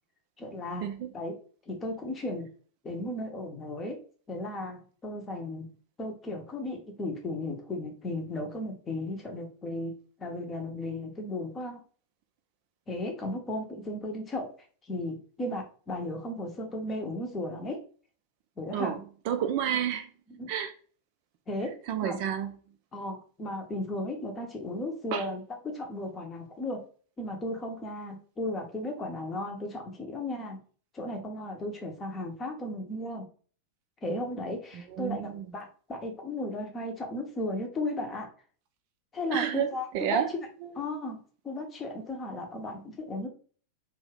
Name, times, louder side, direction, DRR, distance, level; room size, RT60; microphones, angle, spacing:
voice 1, 0.4-0.9 1.1-1.4 1.7-2.5 2.8-4.0 4.3-5.7 6.0-11.8 12.9-14.5 14.9-17.8 18.6-19.0 20.4-20.5 21.5-21.8 22.0-22.2 22.9-26.8 27.2-30.6 30.9-33.3 34.0-38.3 39.1-40.2 40.8-41.2 41.4-43.3, left 1 dB, 20° left, 0.7 m, -35 dB
voice 2, 19.2-20.1 20.5-20.7 21.9-22.6 25.1-25.3 34.7-35.5 39.3-40.3 40.6-40.7, right 9 dB, 45° right, 0.4 m, -30 dB
2.7 x 2.3 x 3.3 m
figure-of-eight pair, 90°, 0 cm